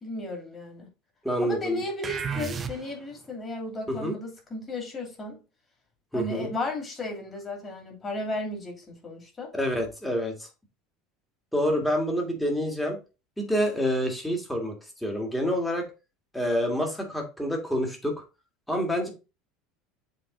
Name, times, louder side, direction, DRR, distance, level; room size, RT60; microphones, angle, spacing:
voice 1, 0.0-0.9 1.4-5.4 6.1-9.5, left 2 dB, 20° left, 2.6 m, -34 dB
voice 2, 1.2-1.8 3.9-4.1 6.1-6.5 9.5-10.5 11.5-13.0 13.4-14.8 15.0-15.9 16.3-18.1 18.7-19.1, equal, 5° left, 1.7 m, -27 dB
sound 1, 2.0-3.2, right 6 dB, 20° right, 0.6 m, -33 dB
7.6 x 3.5 x 3.8 m
cardioid pair, 150°, 0 cm